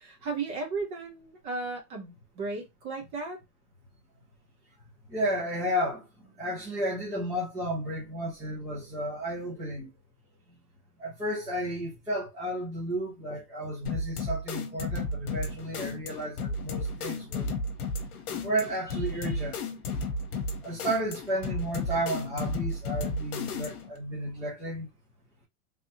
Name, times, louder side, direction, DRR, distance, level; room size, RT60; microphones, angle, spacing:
voice 1, 0.0-3.4, right 3 dB, 30° right, 1.0 m, -35 dB
voice 2, 5.1-9.9 10.5-10.6 11.0-17.6 18.4-19.6 20.6-24.9, right 1 dB, 5° right, 0.5 m, -32 dB
sound 1, 13.9-24.0, left 3 dB, 70° left, 1.0 m, -33 dB
3.4 x 2.7 x 2.7 m
supercardioid pair, 175°, 46 cm